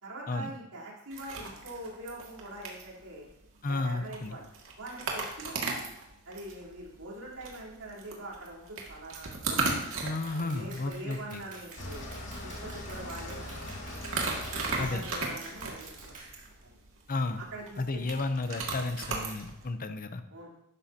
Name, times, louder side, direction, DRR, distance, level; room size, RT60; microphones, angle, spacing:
voice 1, 0.0-3.3 3.7-4.4 4.8-5.6 6.3-9.8 10.3-12.1 12.4-13.6 13.9-14.0 14.7-16.1 16.6-16.7 17.3-18.0 20.3-20.6, right 1 dB, 80° right, -5 dB, 3.7 m, -43 dB
sound 1, 1.1-19.7, right 3 dB, 65° right, 2.2 m, -38 dB
voice 2, 3.6-4.4 10.0-11.4 14.8-15.1 17.1-17.4 17.8-20.2, left 3 dB, 40° left, 9 dB, 0.7 m, -32 dB
Clapping, 10.3-16.4, right 3 dB, 35° right, 2.5 m, -50 dB
sound 2, 11.8-16.7, left 1 dB, 55° left, 2.3 m, -42 dB
13.0 x 11.0 x 2.9 m, 0.82 s
head